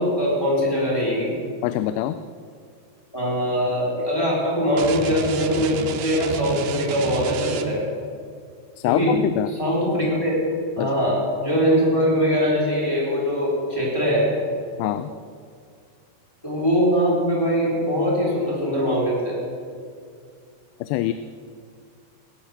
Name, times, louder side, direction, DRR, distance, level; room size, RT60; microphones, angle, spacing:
voice 1, 0.0-1.3 3.1-7.8 8.8-9.2 9.5-10.4 10.7-14.3 16.4-19.4, equal, 5° left, -6 dB, 4.1 m, -22 dB
voice 2, 1.6-2.2 8.8-9.5 10.8-10.9 14.8-15.1 20.8-21.1, left 13 dB, 85° left, 12 dB, 2.7 m, -24 dB
sound 1, 4.8-8.0, right 7 dB, 80° right, 2.9 m, -30 dB
17.0 x 11.5 x 6.8 m, 2.2 s
omnidirectional pair, 4.9 m